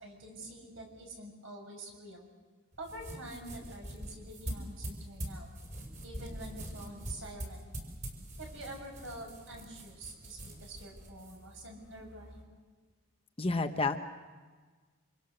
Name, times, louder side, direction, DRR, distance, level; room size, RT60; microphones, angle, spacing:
voice 1, 0.0-2.3 2.8-5.5 6.0-7.7 8.4-12.4, right 1 dB, 60° right, 1 dB, 7.4 m, -47 dB
sound 1, 2.7-12.4, equal, 35° right, 5.4 m, -44 dB
voice 2, 13.4-14.0, left 3 dB, 25° left, 7 dB, 0.9 m, -29 dB
27.5 x 26.5 x 6.7 m, 1.4 s
head